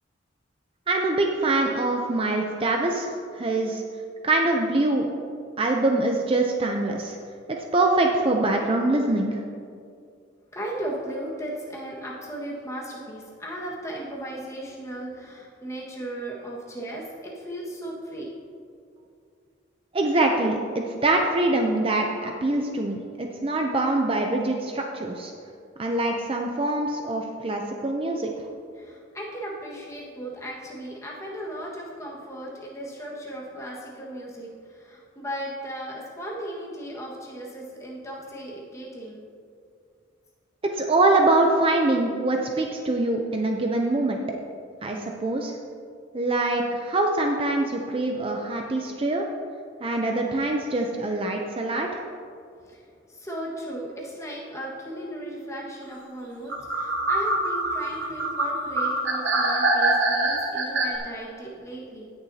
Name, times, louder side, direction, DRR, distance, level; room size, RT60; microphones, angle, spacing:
voice 1, 0.9-3.8 4.2-5.1 5.6-7.2 7.5-9.4 19.9-25.3 25.8-28.3 40.7-44.2 44.8-45.6 46.1-49.3 49.8-52.0, right 2 dB, 30° right, 2 dB, 0.5 m, -24 dB
voice 2, 10.5-18.3 28.7-39.3 41.2-41.3 52.6-62.1, right 1 dB, 15° left, -4 dB, 1.5 m, -36 dB
sound 1, 56.5-61.0, right 2 dB, 70° right, 1.1 m, -24 dB
17.0 x 6.8 x 2.8 m, 2.3 s
head